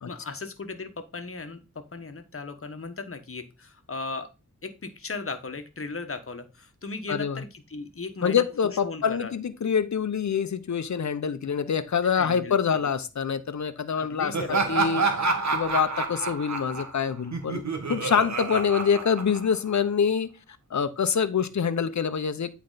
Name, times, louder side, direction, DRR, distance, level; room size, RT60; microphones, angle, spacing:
voice 1, 0.1-4.3 4.6-9.3 12.0-12.9 14.0-14.7, left 3 dB, 45° left, 1.2 m, -37 dB
voice 2, 8.2-15.0 15.5-17.6 17.9-20.3 20.7-22.5, left 7 dB, 65° left, 0.8 m, -25 dB
Laughter, 14.3-19.8, right 4 dB, 65° right, 1.5 m, -28 dB
8.7 x 4.7 x 3.9 m
wide cardioid pair, 100°, 30 cm